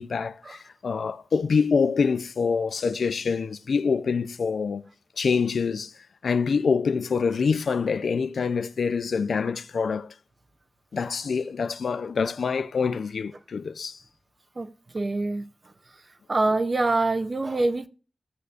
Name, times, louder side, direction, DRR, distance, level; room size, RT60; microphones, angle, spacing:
voice 1, 0.0-4.8 5.2-5.9 6.2-10.1 10.9-14.0, left 5 dB, 85° left, 0.4 m, -25 dB
voice 2, 14.9-15.5 16.3-17.9, right 2 dB, 40° right, 0.6 m, -24 dB
15.5 x 8.0 x 2.5 m
wide cardioid pair, 120°, 0 cm